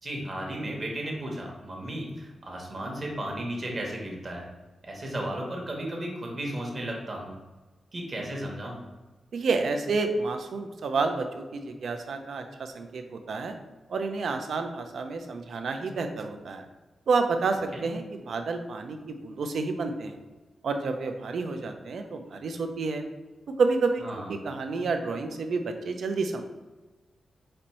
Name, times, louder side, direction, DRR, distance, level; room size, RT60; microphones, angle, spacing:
voice 1, 0.0-4.5 4.8-7.4 7.9-8.8 17.7-17.8 24.0-24.3, right 1 dB, 30° right, -1 dB, 0.9 m, -34 dB
voice 2, 9.3-13.6 13.9-16.7 17.1-20.2 20.6-23.0 23.6-24.0 24.3-26.4, right 4 dB, 65° right, 5 dB, 0.5 m, -29 dB
4.3 x 2.6 x 4.2 m, 1.2 s
wide cardioid pair, 170°, 0 cm